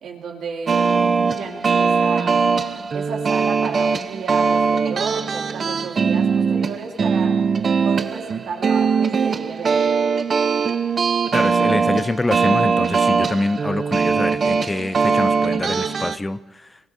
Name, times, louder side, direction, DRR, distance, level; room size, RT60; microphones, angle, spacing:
voice 1, 0.0-2.4 2.9-7.4 7.8-9.9, right 5 dB, 70° right, 0 dB, 2.5 m, -33 dB
sound 1, 0.7-16.2, right 5 dB, 45° right, 0.6 m, -20 dB
voice 2, 11.3-16.7, left 2 dB, 15° left, 14 dB, 0.4 m, -25 dB
23.5 x 22.5 x 2.7 m, 1.2 s
cardioid pair, 90°, 0 cm